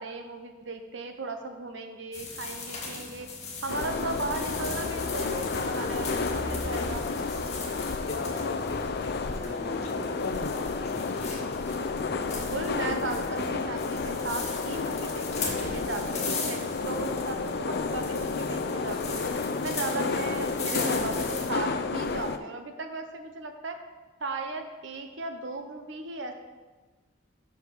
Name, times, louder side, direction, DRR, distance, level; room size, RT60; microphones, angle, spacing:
voice 1, 0.0-3.3 3.6-7.0 12.2-19.2 19.6-23.8 24.2-26.3, right 3 dB, 70° right, 6 dB, 0.9 m, -36 dB
sound 1, 2.1-21.5, left 3 dB, 35° left, 1.7 m, -39 dB
sound 2, 3.7-22.4, left 4 dB, 55° left, 0.4 m, -31 dB
voice 2, 8.1-10.8, left 3 dB, 80° left, 5 dB, 0.9 m, -38 dB
5.9 x 5.8 x 6.4 m, 1.3 s
head